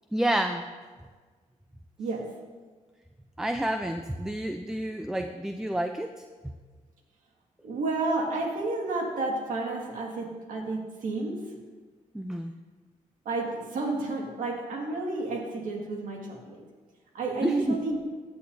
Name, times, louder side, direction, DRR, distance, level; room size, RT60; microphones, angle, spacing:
voice 1, 0.1-0.6 3.4-6.1 12.1-12.5 17.4-17.8, right 1 dB, 5° right, 7 dB, 0.5 m, -29 dB
voice 2, 7.6-11.4 13.3-16.6 17.1-18.0, right 3 dB, 80° right, 0 dB, 1.9 m, -31 dB
15.5 x 8.7 x 2.7 m, 1.5 s
cardioid pair, 95°, 14 cm